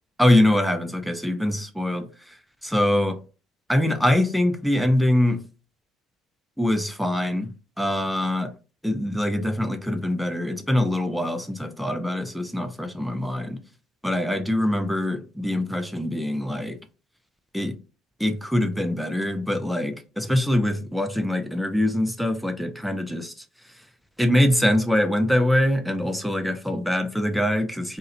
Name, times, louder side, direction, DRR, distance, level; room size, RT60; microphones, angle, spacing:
voice 1, 0.2-3.2 3.7-5.4 6.6-7.5 7.8-8.5 8.8-13.6 14.0-16.8 17.5-17.8 18.2-23.8 24.2-28.0, left 1 dB, ahead, 0.4 m, -23 dB
2.3 x 2.1 x 2.7 m
hypercardioid pair, 65°, 0 cm